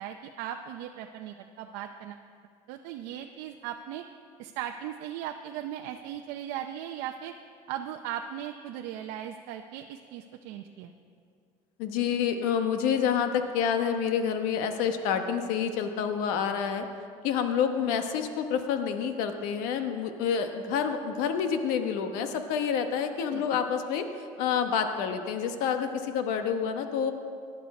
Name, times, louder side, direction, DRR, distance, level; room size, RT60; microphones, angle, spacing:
voice 1, 0.0-2.2 2.7-4.0 4.4-7.3 7.7-10.9 23.3-23.4, right 10 dB, 90° right, 4 dB, 0.6 m, -38 dB
voice 2, 11.8-16.9 17.2-24.1 24.4-27.1, left 7 dB, 90° left, 7 dB, 1.1 m, -28 dB
19.0 x 11.0 x 4.2 m, 2.3 s
cardioid pair, 120°, 14 cm